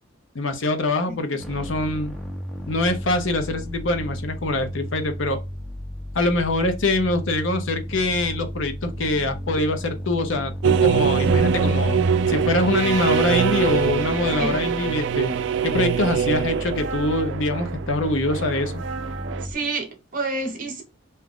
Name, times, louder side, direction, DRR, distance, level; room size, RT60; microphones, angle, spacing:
voice 1, 0.3-2.1 2.7-5.4 6.1-12.0 12.3-15.4 15.6-18.8, left 2 dB, 75° left, 0.7 m, -24 dB
sound 1, 1.4-19.5, equal, ahead, 0.5 m, -34 dB
sound 2, 10.6-19.5, right 7 dB, 65° right, 0.3 m, -23 dB
voice 2, 19.4-20.8, right 3 dB, 45° right, 0.9 m, -28 dB
2.7 x 2.4 x 3.6 m
head